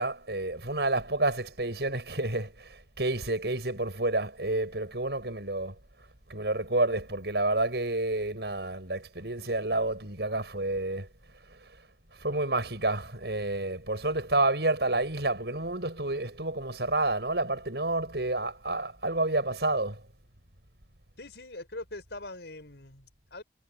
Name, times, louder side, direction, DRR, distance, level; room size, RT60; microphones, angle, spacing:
voice 1, 0.0-5.8 6.3-11.1 11.5-11.8 12.1-20.0, right 2 dB, 75° right, 5.9 m, -29 dB
voice 2, 21.2-23.4, left 2 dB, 80° left, 5.2 m, -42 dB
head